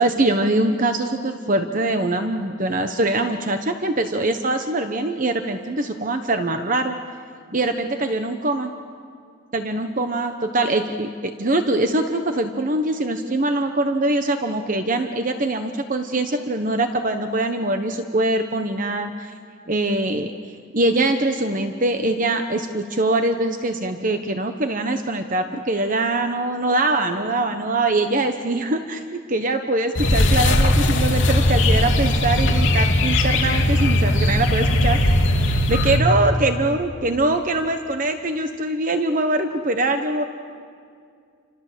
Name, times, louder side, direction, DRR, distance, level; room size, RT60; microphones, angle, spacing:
voice 1, 0.0-7.0 7.5-8.7 9.5-19.3 19.7-20.3 20.7-35.0 35.7-40.2, right 2 dB, 40° right, 7 dB, 1.0 m, -23 dB
sound 1, 29.9-36.0, left 1 dB, 60° left, 2.8 m, -18 dB
29.0 x 26.0 x 7.5 m, 2.2 s
head